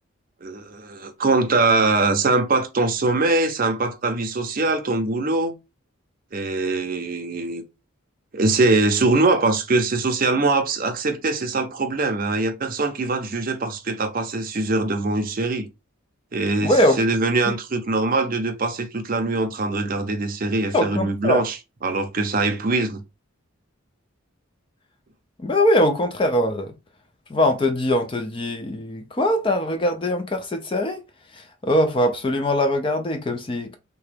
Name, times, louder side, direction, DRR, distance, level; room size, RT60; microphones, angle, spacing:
voice 1, 0.4-5.5 6.3-7.6 8.3-15.7 16.3-23.0, right 3 dB, 40° right, 0.5 m, -22 dB
voice 2, 16.6-17.0 17.5-17.6 20.7-21.4 25.4-26.7 27.3-31.0 31.4-33.8, left 1 dB, 25° left, 0.3 m, -22 dB
2.9 x 2.2 x 3.3 m
head